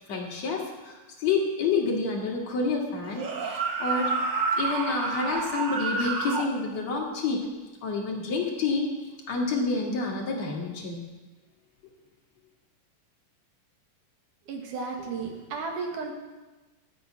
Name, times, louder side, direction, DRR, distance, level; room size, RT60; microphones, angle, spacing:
voice 1, 0.1-4.1 4.6-7.4 7.8-8.9 9.3-11.0, left 4 dB, 55° left, -2 dB, 3.3 m, -28 dB
sound 1, 3.1-6.5, right 4 dB, 55° right, 1.3 m, -29 dB
voice 2, 14.5-16.1, right 4 dB, 75° right, 2 dB, 3.3 m, -34 dB
14.0 x 7.3 x 9.2 m, 1.2 s
omnidirectional pair, 3.7 m